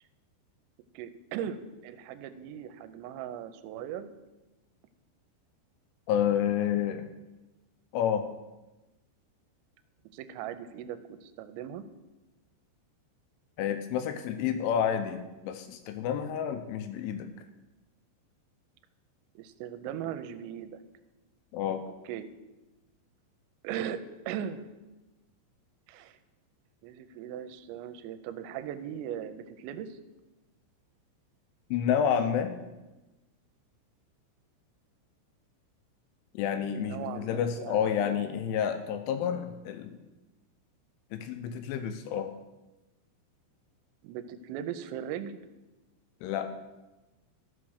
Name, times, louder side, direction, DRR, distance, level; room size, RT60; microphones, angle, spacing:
voice 1, 0.9-4.1 10.1-11.9 19.4-20.8 22.1-22.3 23.6-24.7 25.9-26.2 26.8-30.0 36.8-38.2 44.0-45.4, right 9 dB, 85° right, 11 dB, 3.3 m, -39 dB
voice 2, 6.1-7.1 7.9-8.3 13.6-17.3 21.5-21.8 31.7-32.6 36.3-40.0 41.1-42.3 46.2-46.5, left 8 dB, 80° left, 8 dB, 2.9 m, -29 dB
13.5 x 5.9 x 6.4 m, 1.1 s
omnidirectional pair, 5.9 m